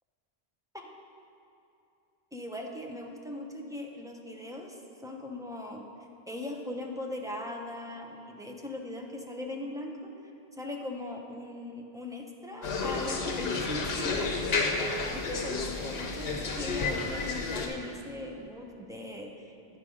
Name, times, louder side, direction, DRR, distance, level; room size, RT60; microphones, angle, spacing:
voice 1, 2.3-5.9 6.3-10.1 10.6-14.5 15.1-19.8, left 1 dB, 5° right, 0 dB, 0.4 m, -39 dB
sound 1, 12.6-17.7, left 3 dB, 70° left, 1.0 m, -31 dB
9.2 x 5.1 x 4.9 m, 2.9 s
omnidirectional pair, 1.1 m